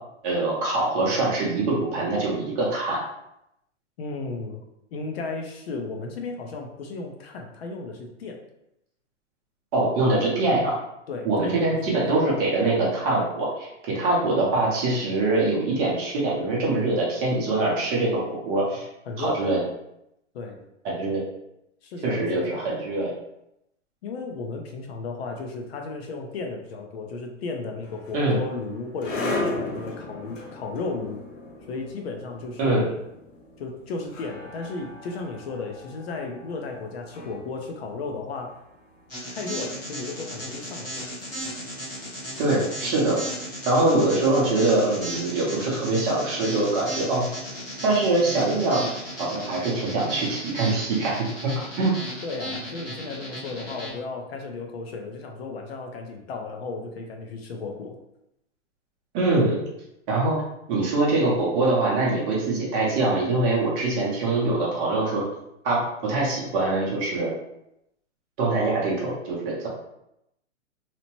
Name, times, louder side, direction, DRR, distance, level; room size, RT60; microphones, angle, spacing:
voice 1, 0.2-3.0 9.7-10.7 11.2-18.9 19.2-19.6 20.8-21.2 22.0-23.1 28.1-28.4 32.6-32.8 42.4-43.2 43.7-47.3 47.8-51.5 51.8-51.9 59.1-59.6 60.1-60.4 60.7-65.2 65.6-67.3 68.4-69.7, right 2 dB, 25° right, -4 dB, 0.7 m, -23 dB
voice 2, 4.0-4.6 4.9-8.4 11.1-11.8 12.0-12.2 19.1-19.5 20.3-20.6 21.8-22.3 24.0-31.3 31.7-33.0 33.6-38.6 39.3-41.1 52.2-58.0, left 3 dB, 55° left, 2 dB, 0.6 m, -34 dB
sound 1, 27.8-39.0, left 2 dB, 85° left, 0.9 m, -36 dB
sound 2, 39.1-53.9, equal, 10° left, 0.3 m, -35 dB
2.8 x 2.1 x 2.9 m, 0.82 s
hypercardioid pair, 145°, 38 cm